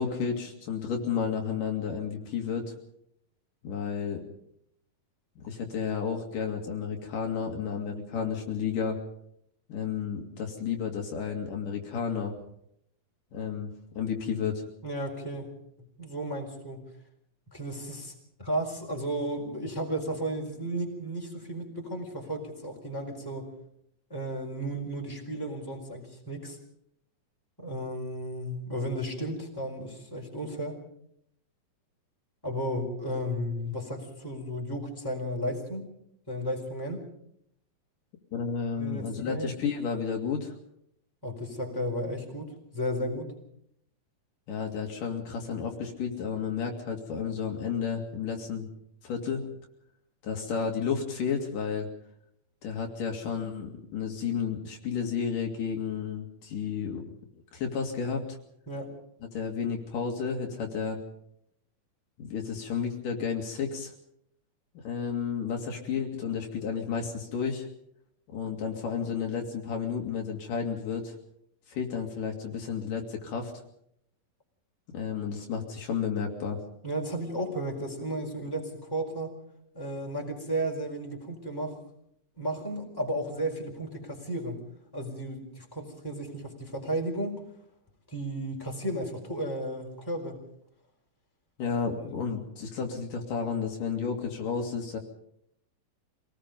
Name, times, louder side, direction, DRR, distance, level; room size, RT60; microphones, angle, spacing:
voice 1, 0.0-2.7 3.6-4.2 5.4-9.0 9.7-12.3 13.3-13.7 14.0-14.6 38.3-40.5 44.5-48.7 49.0-49.4 50.2-51.9 52.6-57.1 57.5-58.2 59.3-61.0 62.2-63.9 64.8-67.7 68.3-71.1 71.7-73.5 74.9-76.6 91.6-95.0, left 6 dB, 65° left, 2 dB, 3.7 m, -32 dB
voice 2, 14.8-15.5 15.8-16.8 17.5-18.1 18.4-23.5 24.1-26.6 27.6-30.8 32.4-35.9 36.3-37.1 38.8-39.5 41.2-43.3 58.7-58.9 76.8-79.3 79.7-81.8 82.4-84.6 84.9-87.4 88.1-90.4 92.0-92.2, right 1 dB, 5° left, 0 dB, 4.2 m, -34 dB
26.5 x 19.0 x 5.3 m, 0.73 s
omnidirectional pair, 4.0 m